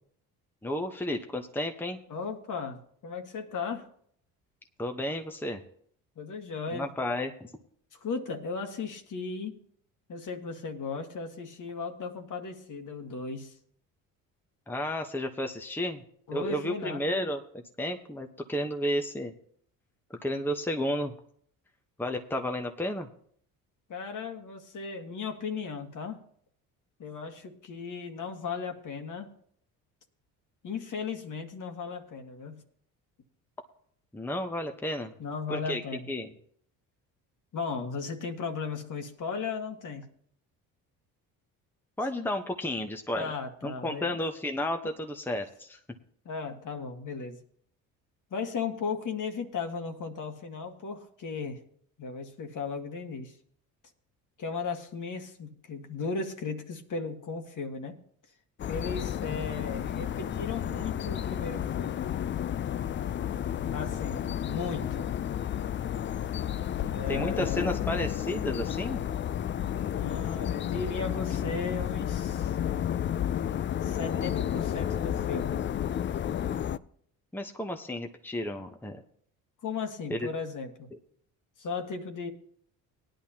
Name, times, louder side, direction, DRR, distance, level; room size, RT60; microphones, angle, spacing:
voice 1, 0.6-2.0 4.8-5.6 6.7-7.5 14.7-16.0 16.3-17.4 17.8-19.3 20.1-21.1 22.0-23.1 34.1-35.1 35.5-35.8 36.1-36.3 42.0-43.3 43.6-45.8 67.1-69.0 77.3-79.0 80.1-80.3, left 1 dB, 5° left, 4 dB, 1.0 m, -32 dB
voice 2, 2.1-3.9 6.2-6.9 7.9-9.6 10.1-13.6 16.3-17.0 23.9-26.2 27.0-29.3 30.6-32.6 35.2-36.1 37.5-40.1 43.2-44.1 46.3-47.4 48.3-51.6 52.0-53.4 54.4-58.0 58.7-62.0 63.7-65.1 66.9-67.7 69.9-72.6 73.8-75.6 79.6-80.9 81.6-82.3, left 5 dB, 50° left, 5 dB, 1.8 m, -36 dB
sound 1, 58.6-76.8, left 10 dB, 30° left, 0.4 m, -31 dB
17.5 x 10.5 x 2.9 m, 0.63 s
supercardioid pair, 70°, 39 cm